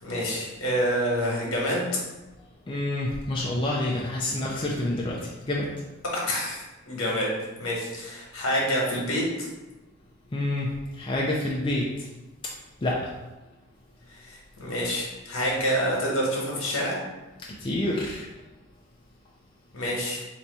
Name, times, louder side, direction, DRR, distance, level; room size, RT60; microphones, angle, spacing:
voice 1, 0.0-1.9 6.1-9.5 14.3-17.0 19.7-20.2, equal, 75° left, -3 dB, 1.3 m, -27 dB
voice 2, 2.7-5.2 5.5-5.7 10.3-10.7 11.0-11.8 12.8-13.0 17.6-18.3, left 1 dB, 25° left, -3 dB, 0.4 m, -27 dB
3.4 x 2.9 x 4.0 m, 1.1 s
head